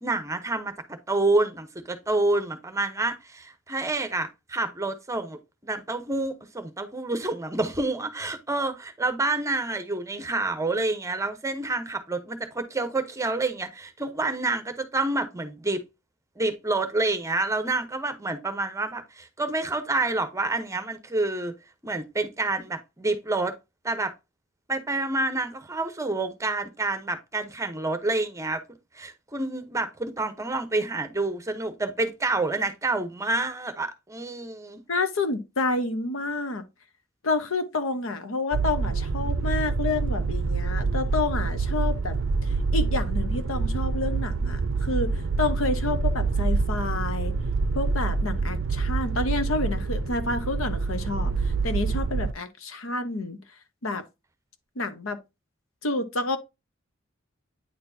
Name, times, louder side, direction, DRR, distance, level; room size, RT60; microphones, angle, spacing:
voice 1, 0.0-5.4 5.6-15.8 16.4-21.5 21.8-23.5 23.8-24.1 24.7-28.6 28.9-34.8, right 2 dB, 15° right, 0.8 m, -28 dB
voice 2, 34.9-36.6 37.2-42.2 42.5-47.3 47.7-51.3 51.6-53.4 53.8-54.0 54.8-55.2 55.8-56.4, left 3 dB, 85° left, 1.0 m, -29 dB
sound 1, 38.5-52.3, right 4 dB, 70° right, 0.5 m, -26 dB
9.1 x 4.4 x 2.6 m
head